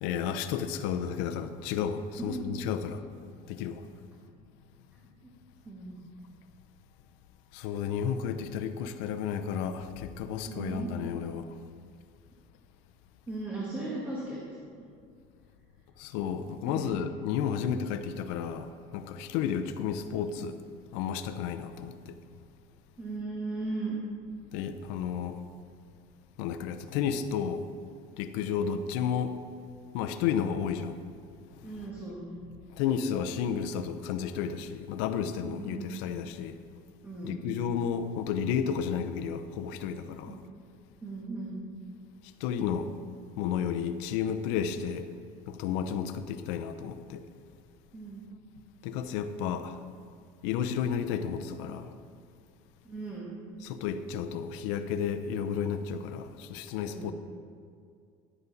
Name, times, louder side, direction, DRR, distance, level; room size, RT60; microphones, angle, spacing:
voice 1, 0.0-3.1 3.5-3.8 7.5-11.5 16.0-20.6 20.9-22.2 24.5-25.4 26.4-27.7 28.2-29.4 29.9-31.0 32.7-36.6 37.2-40.3 42.4-42.9 43.4-45.1 45.5-47.2 48.8-49.8 50.4-51.9 53.6-57.1, left 8 dB, 80° left, 0.7 m, -32 dB
voice 2, 2.2-2.5 5.2-5.3 5.6-6.0 10.5-10.9 13.3-14.4 16.6-17.0 23.0-24.0 31.6-32.4 35.4-35.9 37.0-37.6 40.3-40.4 41.0-41.6 47.9-48.2 52.8-53.3 56.8-57.1, right 3 dB, 10° right, 1.4 m, -37 dB
11.0 x 8.2 x 4.0 m
cardioid pair, 165°, 15 cm